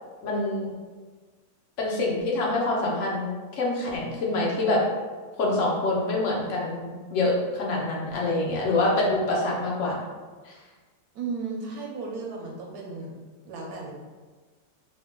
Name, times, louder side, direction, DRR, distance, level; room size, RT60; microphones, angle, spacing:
voice 1, 0.2-0.7 1.8-4.8 5.4-10.0 10.4-10.6, left 2 dB, 55° left, -3 dB, 0.9 m, -26 dB
voice 2, 11.1-13.1 13.5-13.9, right 4 dB, 70° right, -1 dB, 1.0 m, -34 dB
3.7 x 2.2 x 3.6 m, 1.4 s
omnidirectional pair, 1.9 m